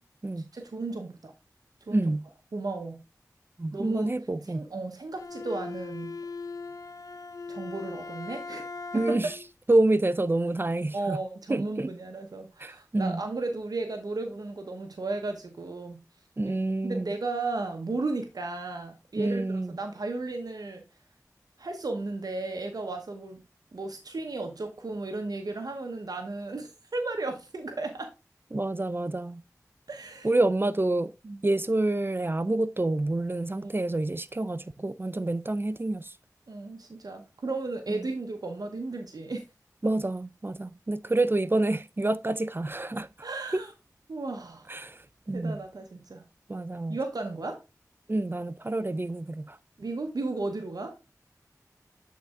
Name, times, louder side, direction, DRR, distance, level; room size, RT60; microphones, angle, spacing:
voice 1, 0.4-1.3 1.9-2.0 2.5-3.0 3.7-4.1 4.5-6.2 7.5-8.6 8.9-9.2 10.9-16.0 16.4-16.5 16.8-19.4 19.8-20.8 21.6-23.4 23.7-28.1 29.9-30.3 31.2-31.4 33.6-33.9 36.5-39.4 43.2-43.7 44.1-44.7 45.3-46.2 46.9-47.6 49.8-51.0, right 3 dB, 80° right, 0.9 m, -34 dB
voice 2, 1.9-2.3 3.6-4.7 8.9-9.4 9.7-11.2 11.5-11.9 12.6-13.2 16.4-17.1 19.2-19.8 28.5-29.4 30.2-31.1 31.4-36.1 37.9-38.0 39.8-43.1 43.5-43.6 44.7-45.6 46.5-47.0 48.1-49.6, right 2 dB, 35° right, 0.5 m, -28 dB
Bowed string instrument, 5.2-9.5, left 4 dB, 75° left, 0.5 m, -39 dB
8.6 x 4.1 x 3.6 m
wide cardioid pair, 45°, 6 cm